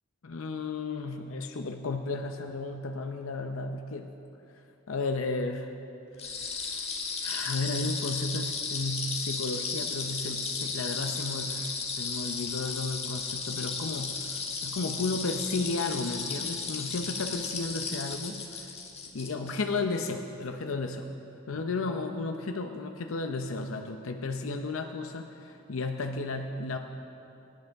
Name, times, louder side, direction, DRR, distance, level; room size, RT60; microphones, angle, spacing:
voice 1, 0.2-4.1 4.9-5.8 6.2-6.8 7.2-18.8 19.1-21.1 21.5-26.8, left 3 dB, 80° left, 4 dB, 0.7 m, -33 dB
sound 1, 6.2-19.6, left 4 dB, 30° left, 1.2 m, -34 dB
23.5 x 10.5 x 3.5 m, 2.8 s
head